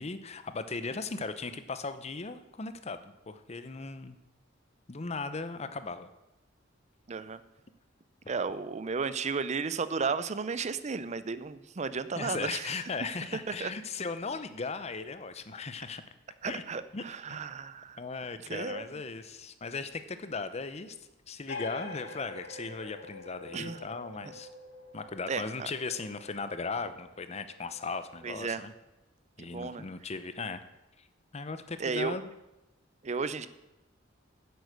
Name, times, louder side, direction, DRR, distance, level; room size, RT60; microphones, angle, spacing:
voice 1, 0.0-4.2 4.9-6.1 12.2-16.0 16.4-16.6 16.9-17.0 17.3-17.4 18.0-21.0 21.3-24.5 24.9-28.7 29.4-30.6 31.3-32.3, left 4 dB, 35° left, 11 dB, 0.7 m, -37 dB
voice 2, 7.1-7.4 8.3-12.7 13.6-13.7 16.4-18.0 18.5-18.9 23.5-23.8 25.3-25.4 28.2-28.6 29.5-29.8 31.8-32.2 33.0-33.5, right 5 dB, 35° right, 14 dB, 0.5 m, -33 dB
sound 1, 21.5-28.7, left 3 dB, 65° left, 2.6 m, -46 dB
9.8 x 8.0 x 6.6 m, 0.97 s
head